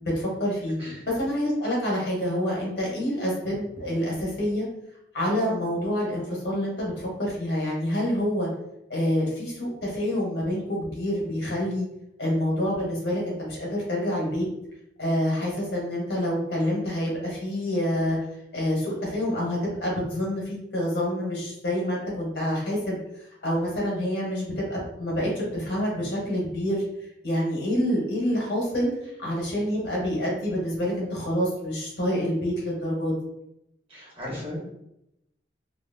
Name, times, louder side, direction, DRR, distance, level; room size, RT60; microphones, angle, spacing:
voice 1, 0.0-0.7 1.2-4.7 5.1-8.5 8.9-11.9 12.2-14.4 15.0-18.2 18.5-20.4 20.7-23.0 23.4-26.8 27.2-28.9 29.2-33.1, equal, 70° left, -4 dB, 1.5 m, -27 dB
voice 2, 33.9-34.6, left 1 dB, 30° right, -6 dB, 1.4 m, -36 dB
3.2 x 2.7 x 2.7 m, 0.82 s
head